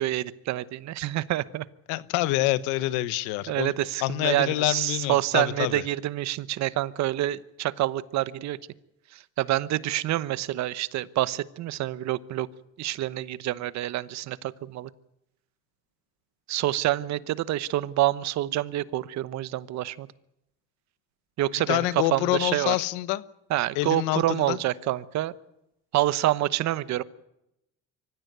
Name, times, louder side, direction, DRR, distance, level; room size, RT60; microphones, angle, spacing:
voice 1, 0.0-1.7 3.5-8.6 9.1-12.5 12.8-14.9 16.5-20.1 21.4-22.8 23.5-25.3 25.9-27.0, right 15 dB, 65° right, 17 dB, 1.0 m, -27 dB
voice 2, 1.9-3.7 4.0-5.8 21.7-23.2 23.7-24.6, left 17 dB, 85° left, 16 dB, 1.1 m, -26 dB
24.5 x 15.0 x 9.4 m, 0.87 s
supercardioid pair, 90°, 29 cm